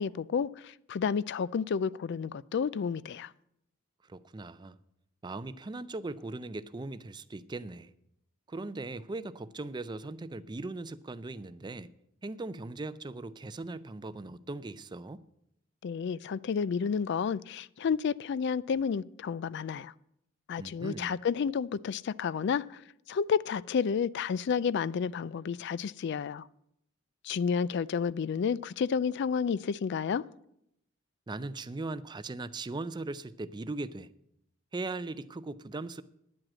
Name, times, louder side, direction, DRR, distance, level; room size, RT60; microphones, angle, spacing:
voice 1, 0.0-3.3 15.8-19.9 20.5-22.8 23.1-26.4 27.2-30.2, left 6 dB, 55° left, 0.3 m, -31 dB
voice 2, 4.0-4.8 5.2-7.9 8.5-11.9 12.2-15.2 20.6-21.2 31.3-34.1 34.7-36.0, right 2 dB, 20° right, 0.4 m, -39 dB
10.5 x 7.8 x 7.5 m
head